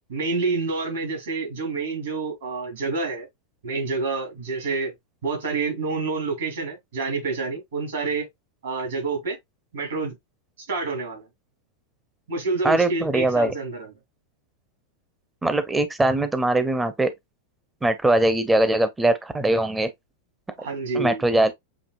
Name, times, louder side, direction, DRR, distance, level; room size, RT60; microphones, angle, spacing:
voice 1, 0.1-3.3 3.6-4.9 5.2-8.3 8.6-9.4 9.7-10.2 10.7-11.3 12.3-13.9 20.6-21.2, right 3 dB, 65° right, 2.6 m, -28 dB
voice 2, 12.6-13.6 15.4-17.1 17.8-19.9 20.6-20.7 20.9-21.5, right 2 dB, 10° right, 0.7 m, -21 dB
7.1 x 2.7 x 2.5 m
figure-of-eight pair, 90°, 0 cm